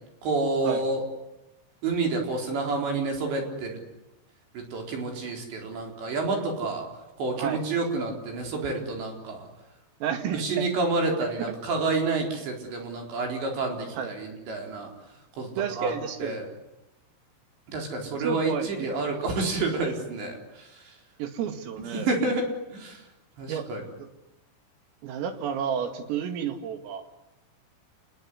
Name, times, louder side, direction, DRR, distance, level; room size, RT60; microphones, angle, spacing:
voice 1, 0.2-1.0 1.8-3.8 4.5-6.9 7.2-9.5 10.3-14.9 15.4-15.5 15.8-15.9 16.2-16.5 17.7-20.7 21.9-22.5 22.7-23.0 23.4-23.8, right 3 dB, 60° right, 2 dB, 6.2 m, -29 dB
voice 2, 10.0-10.6 11.4-11.5 13.9-14.1 15.6-16.4 17.9-19.0 21.2-22.1 23.5-23.7 25.0-27.0, right 8 dB, 80° right, 7 dB, 4.8 m, -31 dB
29.0 x 21.0 x 9.8 m, 0.93 s
omnidirectional pair, 5.9 m